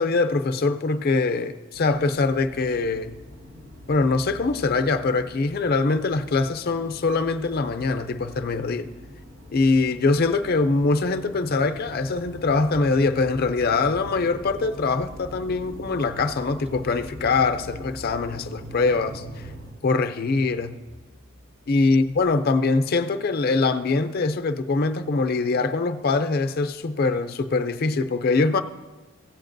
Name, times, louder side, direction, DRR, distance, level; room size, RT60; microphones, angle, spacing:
voice 1, 0.0-3.2 3.9-8.9 9.5-19.5 19.8-20.8 21.7-28.6, left 3 dB, 50° left, 0.5 m, -23 dB
sound 1, 1.7-19.7, left 1 dB, 70° right, 1.7 m, -42 dB
Car / Engine starting, 16.6-16.7 17.1-22.3, right 3 dB, 30° right, 0.6 m, -48 dB
16.5 x 8.3 x 2.6 m
head